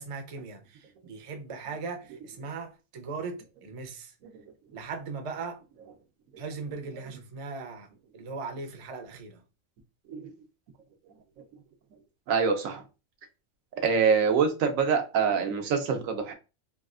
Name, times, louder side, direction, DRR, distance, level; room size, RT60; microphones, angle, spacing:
voice 1, 0.0-4.1 4.7-5.6 6.4-7.9 8.1-9.4, right 4 dB, 50° right, 0.4 m, -39 dB
voice 2, 12.3-12.8 13.8-16.3, right 6 dB, 90° right, 1.1 m, -25 dB
3.3 x 2.3 x 2.4 m
omnidirectional pair, 1.4 m